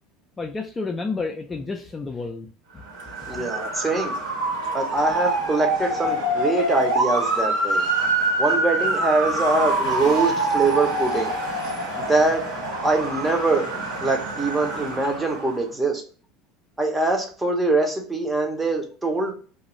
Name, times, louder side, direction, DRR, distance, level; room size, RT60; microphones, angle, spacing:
voice 1, 0.4-2.5 2.7-2.8, left 4 dB, 20° left, 2 dB, 0.4 m, -30 dB
Motor vehicle (road) / Siren, 2.9-15.6, right 2 dB, 85° right, 1.3 m, -25 dB
voice 2, 3.3-4.1 4.7-7.8 8.4-11.3 12.1-12.4 12.8-13.7 14.0-16.0 16.8-19.3, right 2 dB, 15° right, 3 dB, 0.7 m, -23 dB
2.4 x 2.2 x 2.9 m, 0.41 s
supercardioid pair, 110°, 0 cm